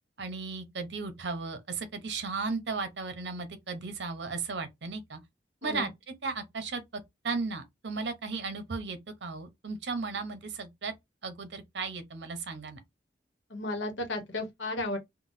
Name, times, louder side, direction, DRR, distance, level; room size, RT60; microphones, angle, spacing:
voice 1, 0.2-5.2 5.6-5.9 6.2-10.9 11.2-12.8, right 4 dB, 70° right, 0.7 m, -35 dB
voice 2, 13.5-15.0, left 2 dB, 90° left, 1.0 m, -34 dB
3.7 x 2.1 x 2.6 m
head